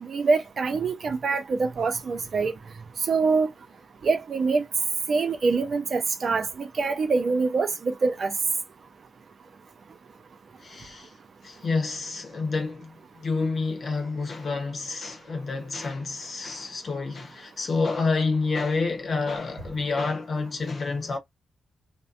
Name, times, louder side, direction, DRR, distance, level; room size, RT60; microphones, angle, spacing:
voice 1, 0.0-2.5 3.1-3.5 4.0-4.6 5.1-8.3, right 4 dB, 60° right, 0.6 m, -25 dB
voice 2, 10.6-11.1 11.4-21.2, left 4 dB, 55° left, 0.9 m, -28 dB
2.6 x 2.1 x 2.5 m
supercardioid pair, 45°, 0 cm